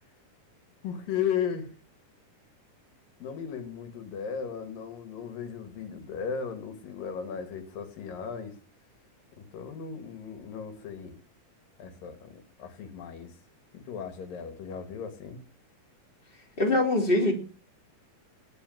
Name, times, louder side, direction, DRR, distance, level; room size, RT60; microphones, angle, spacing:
voice 1, 0.8-1.7 3.2-8.6 9.4-11.2 11.8-13.3 13.7-15.4, left 7 dB, 90° left, 9 dB, 3.6 m, -36 dB
voice 2, 16.6-17.3, left 2 dB, 15° left, 2 dB, 3.5 m, -23 dB
19.5 x 6.5 x 7.8 m, 0.38 s
omnidirectional pair, 3.8 m